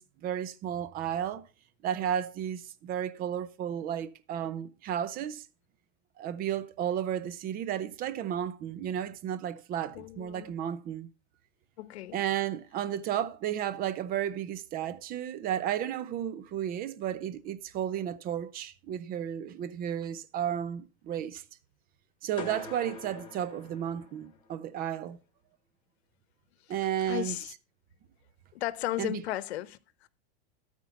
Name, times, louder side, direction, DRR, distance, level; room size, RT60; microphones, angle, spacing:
voice 1, 0.0-1.5 1.8-5.5 6.2-11.1 12.1-21.4 22.2-25.2 26.7-27.4 29.0-29.2, right 10 dB, 30° right, 0.7 m, -33 dB
voice 2, 9.9-10.5 11.8-12.2 26.7-27.5 28.5-30.1, left 14 dB, 80° left, 1.1 m, -36 dB
sound 1, 22.4-24.5, left 4 dB, 15° left, 2.1 m, -44 dB
13.5 x 4.5 x 5.6 m
supercardioid pair, 145°, 31 cm